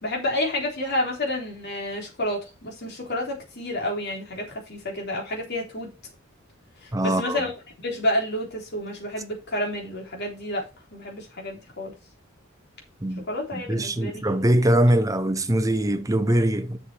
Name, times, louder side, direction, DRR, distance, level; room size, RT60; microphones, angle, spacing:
voice 1, 0.0-5.9 6.8-7.5 7.8-10.7 10.9-12.0 13.2-14.3 14.6-14.7, left 1 dB, 55° left, 3.7 m, -30 dB
voice 2, 6.9-7.4 13.0-13.2 13.5-16.8, right 1 dB, 15° right, 0.8 m, -22 dB
7.6 x 6.7 x 4.5 m
head